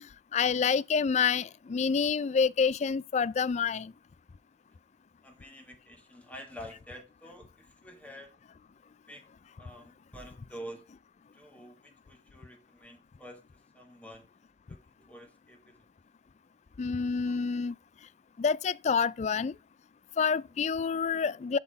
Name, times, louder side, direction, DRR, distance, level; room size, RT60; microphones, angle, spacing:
voice 1, 0.0-3.9 16.8-17.7 18.4-19.5 20.2-21.6, left 6 dB, 40° left, 0.3 m, -28 dB
voice 2, 5.2-8.3 9.1-9.3 9.6-10.8 11.3-13.4 13.7-14.3 14.7-15.8, equal, 10° left, 1.6 m, -48 dB
11.0 x 4.0 x 4.1 m
head